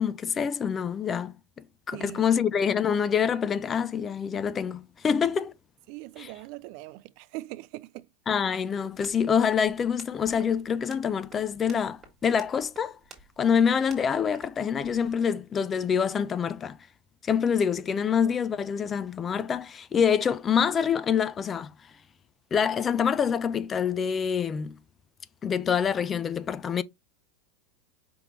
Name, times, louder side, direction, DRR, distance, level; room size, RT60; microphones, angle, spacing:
voice 1, 0.0-1.4 1.9-5.5 6.2-6.3 8.3-13.0 13.4-16.8 17.2-21.9 22.5-24.8 25.4-26.8, left 7 dB, 20° left, 0.4 m, -26 dB
voice 2, 1.9-2.4 5.1-5.2 5.9-8.1, right 19 dB, 55° right, 0.4 m, -41 dB
sound 1, 8.8-15.1, right 5 dB, 25° right, 1.7 m, -54 dB
5.2 x 3.0 x 3.3 m
supercardioid pair, 140°, 0 cm